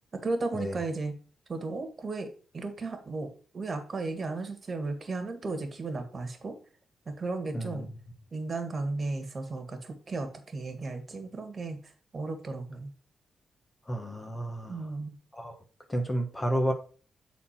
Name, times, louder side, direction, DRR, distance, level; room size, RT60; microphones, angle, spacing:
voice 1, 0.1-1.1 1.5-6.6 7.1-7.9 8.3-12.9 14.7-15.1, right 3 dB, 40° right, 1.8 m, -35 dB
voice 2, 7.5-7.8 13.9-14.8 15.4-15.5 15.9-16.7, equal, 20° left, 1.4 m, -31 dB
9.1 x 4.2 x 4.4 m
cardioid pair, 80°, 0 cm